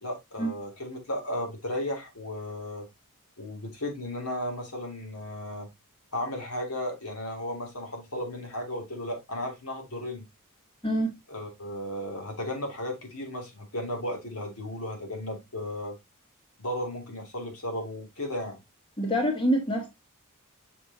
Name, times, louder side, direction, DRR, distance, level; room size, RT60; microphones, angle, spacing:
voice 1, 0.0-2.9 3.4-5.7 6.1-10.2 11.3-16.0 16.6-18.6, left 1 dB, 80° left, 2.9 m, -35 dB
voice 2, 19.0-19.9, equal, 25° left, 1.6 m, -25 dB
6.7 x 6.1 x 2.9 m
head